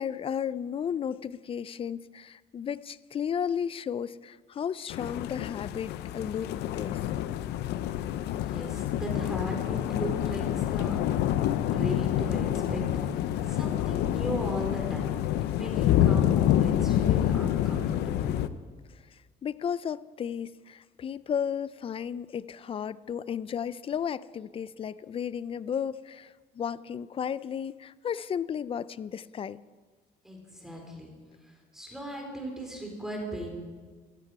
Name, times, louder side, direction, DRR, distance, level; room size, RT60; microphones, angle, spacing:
voice 1, 0.0-7.0 19.1-29.6, left 8 dB, 35° left, 18 dB, 0.4 m, -34 dB
sound 1, 4.9-18.5, left 11 dB, 80° left, 0.7 m, -27 dB
voice 2, 8.4-11.0 11.3-15.1 15.5-18.3 30.2-31.1 31.4-33.5, equal, 5° right, 0 dB, 3.7 m, -37 dB
16.5 x 14.0 x 4.8 m, 1.5 s
cardioid pair, 110°, 17 cm